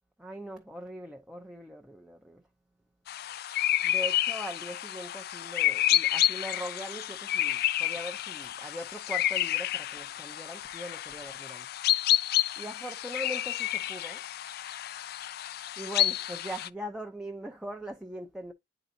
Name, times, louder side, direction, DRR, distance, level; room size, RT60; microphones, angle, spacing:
voice 1, 0.2-2.4 3.8-11.7 12.6-14.2 15.8-18.5, equal, 5° right, 0.6 m, -41 dB
sound 1, 3.1-16.7, left 13 dB, 55° left, 0.3 m, -30 dB
9.9 x 3.9 x 2.7 m
head